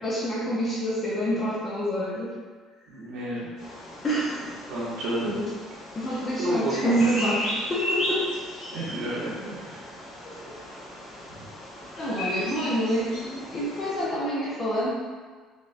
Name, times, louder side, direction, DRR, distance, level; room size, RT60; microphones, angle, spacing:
voice 1, 0.0-2.3 4.0-4.5 5.3-5.5 6.0-8.3 10.2-10.4 12.0-14.9, equal, 20° left, -7 dB, 0.4 m, -27 dB
voice 2, 2.9-3.5 4.7-5.4 6.4-7.3 8.7-9.8, right 1 dB, 85° right, -8 dB, 0.6 m, -30 dB
Bird vocalization bird call bird song, 3.6-14.1, equal, 70° left, 1.4 m, -35 dB
3.4 x 2.1 x 2.4 m, 1.5 s
cardioid pair, 170°, 0 cm